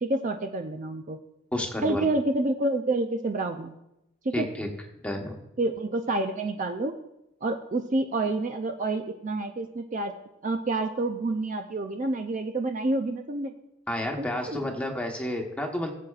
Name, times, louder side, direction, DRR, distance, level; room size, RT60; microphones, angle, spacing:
voice 1, 0.0-1.2 1.8-3.7 4.2-4.5 5.6-6.9 7.4-10.1 10.4-13.5 14.2-14.6, right 2 dB, 35° right, 5 dB, 0.5 m, -28 dB
voice 2, 1.5-2.1 4.3-4.7 5.0-5.4 13.9-15.9, left 1 dB, 5° left, 1 dB, 1.1 m, -30 dB
19.0 x 7.6 x 2.4 m, 0.88 s
head